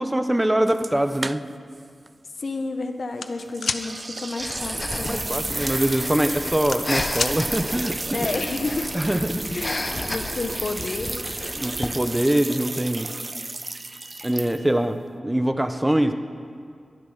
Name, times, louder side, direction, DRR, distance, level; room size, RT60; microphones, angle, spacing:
voice 1, 0.0-1.4 5.0-8.3 8.9-9.7 11.6-13.1 14.2-16.1, right 1 dB, 15° right, 8 dB, 1.1 m, -23 dB
sound 1, 0.7-1.8 2.1-2.2 3.5-14.8, right 2 dB, 40° right, 0.3 m, -32 dB
voice 2, 2.4-5.3 8.1-8.9 9.5-11.3, left 3 dB, 60° left, 6 dB, 1.1 m, -30 dB
sound 2, 3.2-3.8 5.5-5.7 6.1-7.4, left 5 dB, 80° left, 0.7 m, -28 dB
Breathing, 4.4-12.1, left 2 dB, 40° left, 1.2 m, -33 dB
22.5 x 10.5 x 5.7 m, 2.2 s
cardioid pair, 50°, 0 cm